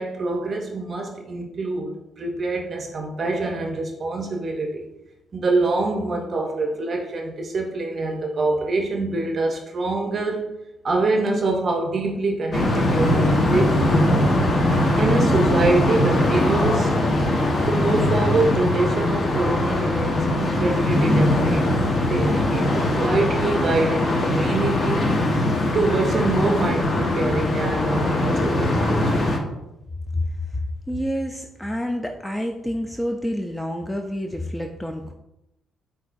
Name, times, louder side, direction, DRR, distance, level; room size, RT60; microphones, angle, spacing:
voice 1, 0.0-4.8 5.3-10.5 10.8-14.4 14.9-16.9 17.6-21.6 22.1-25.0 25.7-29.2, right 2 dB, 45° right, 2 dB, 0.6 m, -25 dB
sound 1, 12.5-29.4, left 1 dB, 40° left, 0.9 m, -21 dB
voice 2, 30.9-35.1, left 1 dB, 10° left, 3 dB, 0.3 m, -28 dB
7.6 x 2.6 x 2.5 m, 0.92 s
cardioid pair, 90°, 0 cm